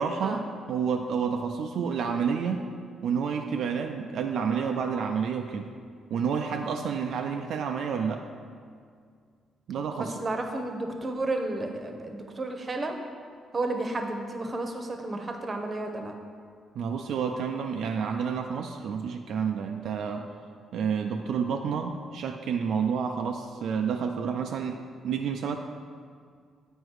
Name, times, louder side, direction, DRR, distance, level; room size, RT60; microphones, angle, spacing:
voice 1, 0.0-2.7 3.0-5.7 6.1-8.3 9.7-10.2 16.8-20.3 20.7-25.6, right 6 dB, 75° right, 3 dB, 0.4 m, -29 dB
voice 2, 9.9-13.0 13.5-16.2, right 2 dB, 35° right, 4 dB, 0.9 m, -32 dB
7.9 x 5.1 x 4.8 m, 2.1 s
cardioid pair, 90°, 0 cm